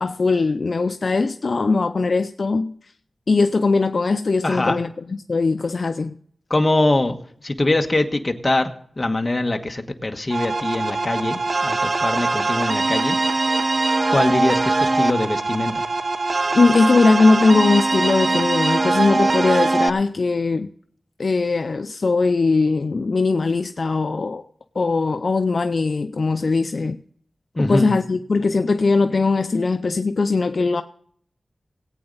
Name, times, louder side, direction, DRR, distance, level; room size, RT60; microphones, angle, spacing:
voice 1, 0.0-2.7 3.3-6.1 16.5-20.7 21.2-24.4 24.8-27.0 27.6-30.8, left 3 dB, 60° left, 0.5 m, -20 dB
voice 2, 4.4-4.8 6.5-7.2 7.4-8.7 9.0-13.2 14.1-15.8 27.6-27.9, left 2 dB, 30° left, 1.3 m, -22 dB
sound 1, 10.3-19.9, right 3 dB, 50° right, 0.6 m, -21 dB
18.5 x 8.8 x 4.0 m
wide cardioid pair, 90°, 0 cm